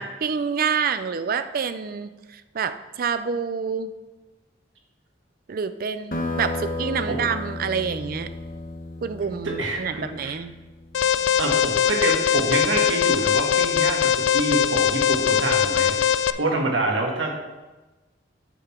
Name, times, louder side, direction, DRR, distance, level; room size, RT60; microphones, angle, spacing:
voice 1, 0.0-3.9 5.5-8.3 9.0-10.5, right 6 dB, 50° right, 11 dB, 0.4 m, -27 dB
sound 1, 6.1-11.2, left 2 dB, 50° left, 1.0 m, -33 dB
voice 2, 9.4-10.3 11.4-17.3, right 2 dB, 80° right, 1 dB, 1.5 m, -26 dB
Alarm, 10.9-16.3, left 8 dB, 80° left, 0.4 m, -21 dB
8.3 x 5.8 x 4.4 m, 1.1 s
head